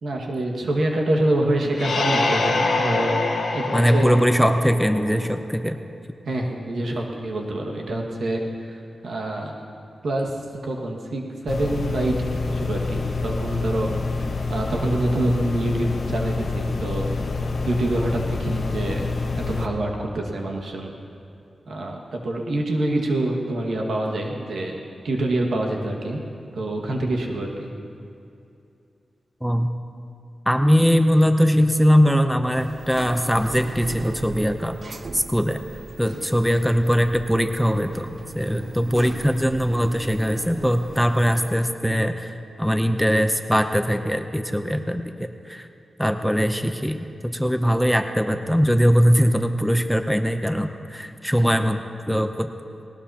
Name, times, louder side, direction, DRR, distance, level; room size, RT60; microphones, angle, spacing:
voice 1, 0.0-4.1 6.3-9.6 10.0-10.3 10.6-13.9 14.2-17.1 17.7-19.1 19.3-20.9 21.7-24.8 25.0-26.2 26.5-27.7, right 1 dB, 75° right, 0 dB, 1.8 m, -26 dB
sound 1, 1.7-5.3, left 3 dB, 80° left, 2.0 m, -25 dB
voice 2, 3.7-5.8 29.4-29.7 30.5-34.8 35.1-35.6 36.0-38.1 38.3-45.7 46.0-52.5, equal, ahead, 7 dB, 0.7 m, -21 dB
sound 2, 11.5-19.7, left 3 dB, 60° left, 1.1 m, -27 dB
sound 3, 32.5-41.5, right 3 dB, 40° right, 0.8 m, -39 dB
19.5 x 18.5 x 2.9 m, 2.6 s
wide cardioid pair, 100°, 0 cm